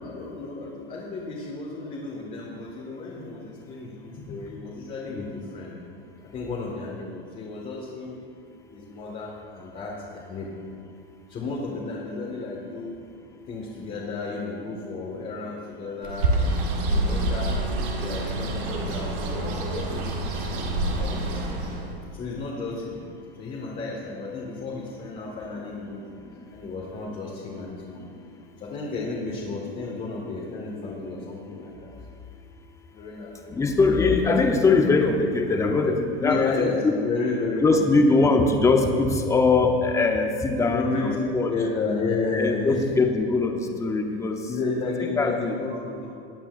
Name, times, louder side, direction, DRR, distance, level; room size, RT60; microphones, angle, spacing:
voice 1, 0.0-5.8 6.2-8.2 8.7-10.5 11.3-13.0 13.5-20.6 21.0-23.0 23.4-26.0 26.5-28.0 28.6-31.9 32.9-33.6 36.2-38.2 40.7-42.8 44.5-46.1, left 3 dB, 25° left, -5 dB, 1.7 m, -32 dB
Bird, 16.0-21.9, right 2 dB, 60° right, 1.9 m, -27 dB
voice 2, 33.5-37.0 37.6-41.5 42.3-44.4 45.2-45.5, left 3 dB, 10° left, 3 dB, 0.8 m, -21 dB
20.0 x 8.7 x 2.5 m, 2.4 s
supercardioid pair, 140°, 31 cm